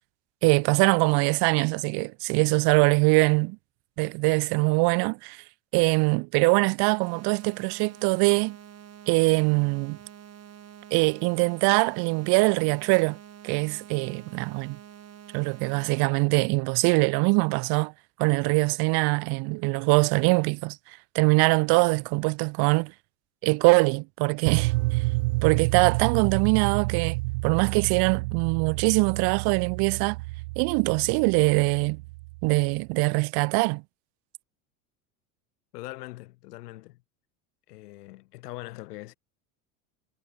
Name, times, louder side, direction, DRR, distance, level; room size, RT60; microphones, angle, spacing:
voice 1, 0.4-3.6 4.0-5.4 5.7-8.6 9.1-10.0 10.9-13.2 13.4-14.8 15.3-17.9 18.2-22.9 23.4-25.0 25.4-27.2 27.4-30.2 30.6-32.0 32.4-33.8, right 30 dB, 55° right, 0.7 m, -23 dB
sound 1, 7.0-16.0, right 9 dB, 35° right, 6.1 m, -47 dB
sound 2, 24.5-32.6, right 23 dB, 80° right, 1.4 m, -29 dB
voice 2, 35.7-37.0 37.7-39.2, left 19 dB, 80° left, 7.9 m, -42 dB
supercardioid pair, 110°, 46 cm